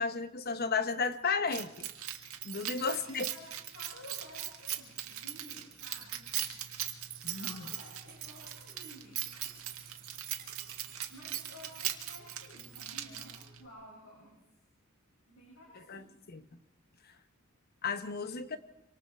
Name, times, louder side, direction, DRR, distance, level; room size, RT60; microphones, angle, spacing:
voice 1, 0.0-1.9 2.4-3.3 7.2-7.7 15.9-16.0 16.3-16.4 17.8-18.6, left 5 dB, 45° left, 11 dB, 1.0 m, -33 dB
Keys jangling, 1.5-13.6, right 12 dB, 85° right, 1.9 m, -40 dB
voice 2, 2.6-6.5 6.9-9.9 11.1-14.4 15.3-16.2, left 1 dB, 75° left, -4 dB, 7.4 m, -53 dB
sound 1, 6.8-12.5, right 10 dB, 45° right, 4.9 m, -53 dB
26.0 x 25.5 x 4.7 m, 0.88 s
head